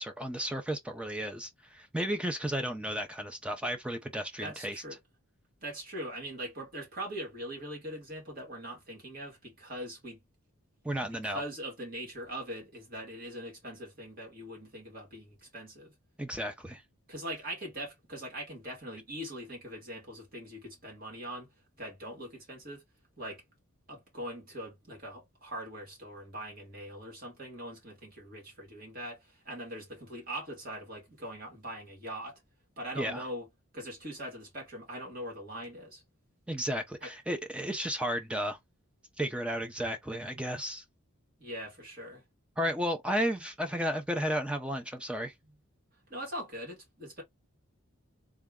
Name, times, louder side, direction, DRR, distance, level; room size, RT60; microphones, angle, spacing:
voice 1, 0.0-4.8 10.8-11.4 16.2-16.8 32.9-33.2 36.5-38.6 39.2-40.8 42.6-45.3, equal, 5° right, 0.6 m, -33 dB
voice 2, 4.4-5.0 5.6-10.2 11.0-15.9 17.1-21.5 21.8-22.8 23.2-23.4 23.9-32.4 32.8-33.5 33.7-36.0 37.0-37.1 41.4-42.2 45.4-45.5 46.1-47.2, right 1 dB, 40° right, 1.9 m, -42 dB
3.5 x 2.3 x 3.6 m
head